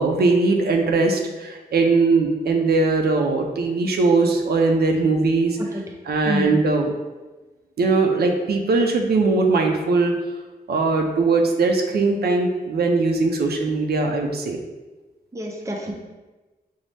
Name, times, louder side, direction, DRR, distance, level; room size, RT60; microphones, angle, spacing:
voice 1, 0.0-5.6 6.1-6.9 7.8-10.1 10.7-14.6, right 3 dB, 85° right, 2 dB, 0.5 m, -20 dB
voice 2, 6.3-6.6 15.3-15.9, equal, 20° right, 0 dB, 0.5 m, -27 dB
5.3 x 2.0 x 3.2 m, 1.2 s
wide cardioid pair, 150°, 16 cm